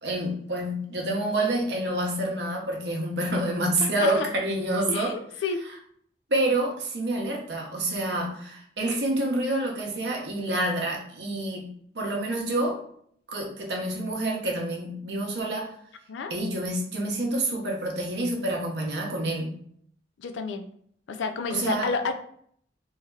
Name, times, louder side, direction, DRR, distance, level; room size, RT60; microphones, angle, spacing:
voice 1, 0.0-5.1 6.3-11.7 11.9-12.8 13.3-15.7 16.3-19.6 21.5-21.9, right 1 dB, 65° right, -1 dB, 0.8 m, -28 dB
voice 2, 3.8-4.3 4.9-5.6 16.1-16.3 20.2-20.6 21.1-22.1, left 4 dB, 90° left, 7 dB, 0.4 m, -30 dB
3.1 x 2.7 x 2.3 m, 0.63 s
head